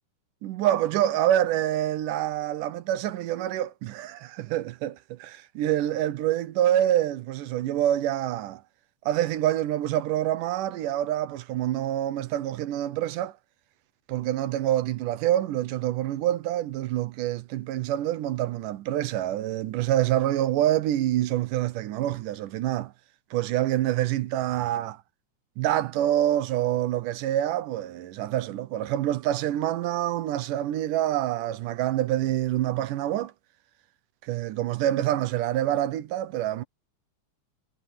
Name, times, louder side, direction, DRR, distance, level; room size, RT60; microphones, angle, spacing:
voice 1, 0.4-8.6 9.1-13.4 14.1-22.9 23.3-25.0 25.6-33.3 34.2-36.6, right 12 dB, 85° right, 2.5 m, -26 dB
omnidirectional pair, 3.6 m